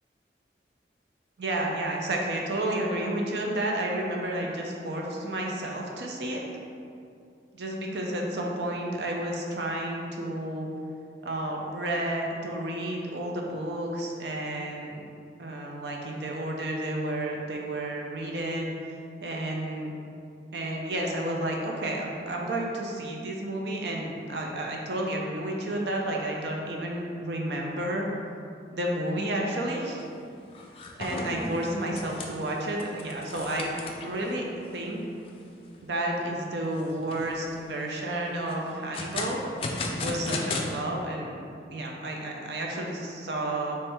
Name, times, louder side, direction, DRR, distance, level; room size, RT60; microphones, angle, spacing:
voice 1, 1.4-6.4 7.5-10.7 11.2-15.1 15.4-18.7 19.2-19.9 20.5-28.1 28.7-30.1 31.0-33.7 34.0-35.0 35.8-39.4 39.8-41.4 41.7-43.8, right 1 dB, 75° right, -1 dB, 0.6 m, -31 dB
sound 1, 30.0-30.2 30.5-34.2 34.7-34.8 35.3-35.4 35.8-36.3 36.8-37.4 38.5-40.7, left 3 dB, 30° left, 0.3 m, -35 dB
3.4 x 3.2 x 4.4 m, 2.4 s
head